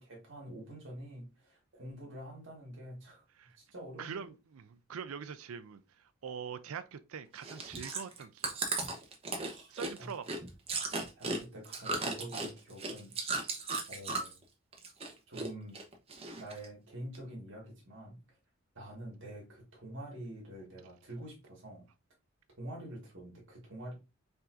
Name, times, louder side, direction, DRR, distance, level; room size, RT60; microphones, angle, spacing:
voice 1, 0.0-3.2 3.6-4.2 9.4-10.1 11.2-13.1 13.9-14.4 15.3-15.8 16.4-18.2 18.8-21.9 22.6-23.9, right 1 dB, 55° right, 1.8 m, -46 dB
voice 2, 4.0-8.6 9.7-10.2 11.3-11.4, right 6 dB, 75° right, 0.4 m, -44 dB
Chewing mastication, 7.4-14.4 14.7-15.5 15.7-16.7 17.1-17.2, right 3 dB, 25° right, 0.9 m, -36 dB
5.6 x 3.6 x 2.5 m
head